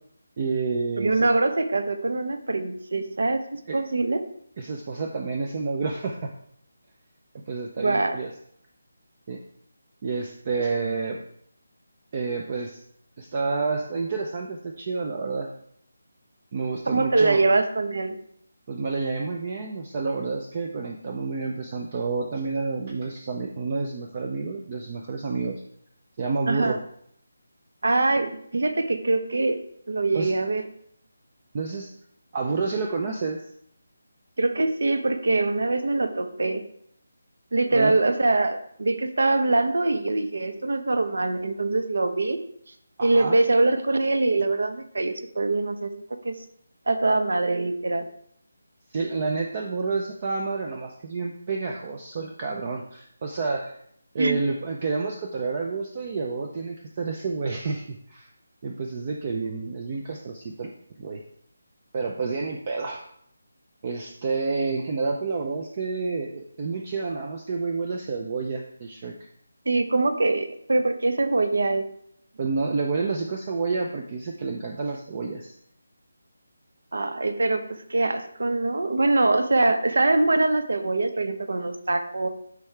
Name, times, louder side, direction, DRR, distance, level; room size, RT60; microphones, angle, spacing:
voice 1, 0.4-1.3 3.7-3.8 4.6-6.3 7.3-8.3 9.3-9.4 10.0-11.2 12.1-12.8 13.2-15.5 16.5-17.4 18.7-25.6 26.2-26.8 30.1-30.3 31.5-31.9 32.3-33.4 37.7-38.0 43.0-43.4 48.9-53.8 54.1-58.3 58.6-60.7 61.0-61.2 61.9-63.1 63.8-69.1 72.4-75.5, right 4 dB, 25° right, 3 dB, 0.5 m, -29 dB
voice 2, 1.0-4.2 7.8-8.2 16.9-18.2 26.5-26.8 27.8-29.6 29.9-30.6 34.4-36.6 37.5-42.4 43.0-45.9 46.2-46.3 46.9-48.1 54.2-54.4 69.7-71.8 76.9-82.3, right 2 dB, 70° right, 9 dB, 0.9 m, -23 dB
13.0 x 4.7 x 3.3 m, 0.67 s
figure-of-eight pair, 175°, 0 cm